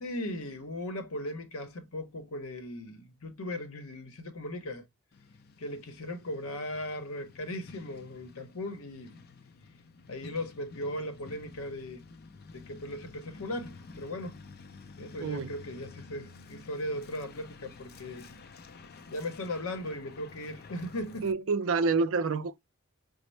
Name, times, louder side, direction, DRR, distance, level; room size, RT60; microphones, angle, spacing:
voice 1, 0.0-4.8 5.6-9.2 10.1-12.1 12.5-14.4 15.0-18.4 19.1-21.3, left 1 dB, 70° left, 0.8 m, -38 dB
Truck, 5.1-21.3, left 4 dB, 45° left, 0.4 m, -51 dB
voice 2, 15.2-15.5 21.2-22.6, right 4 dB, 60° right, 0.4 m, -28 dB
5.1 x 2.0 x 3.1 m
head